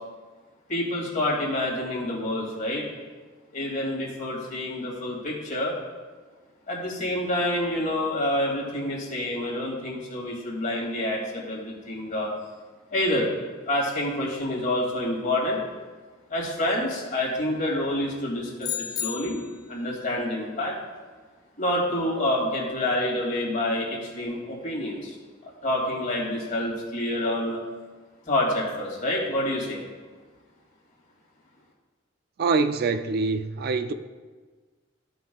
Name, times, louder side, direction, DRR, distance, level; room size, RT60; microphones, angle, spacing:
voice 1, 0.7-2.9 3.5-5.7 6.7-12.3 12.9-13.3 13.7-15.6 16.3-19.4 19.7-20.7 21.6-25.1 25.4-27.6 28.3-29.8, left 1 dB, 45° left, 2.4 m, -27 dB
sound 1, 18.6-19.7, left 10 dB, 20° left, 0.3 m, -32 dB
voice 2, 32.4-33.9, right 4 dB, 50° right, 0.4 m, -24 dB
14.5 x 5.3 x 2.3 m
head